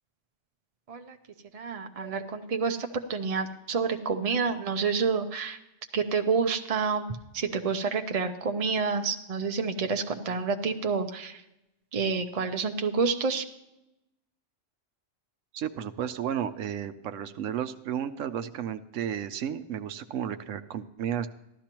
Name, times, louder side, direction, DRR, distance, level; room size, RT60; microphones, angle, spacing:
voice 1, 1.5-5.6 5.9-7.1 7.3-11.4 11.9-13.4, right 5 dB, 45° right, 6 dB, 0.5 m, -28 dB
voice 2, 15.5-21.3, right 9 dB, 90° right, 10 dB, 1.0 m, -33 dB
14.5 x 11.5 x 3.0 m, 0.90 s
omnidirectional pair, 1.3 m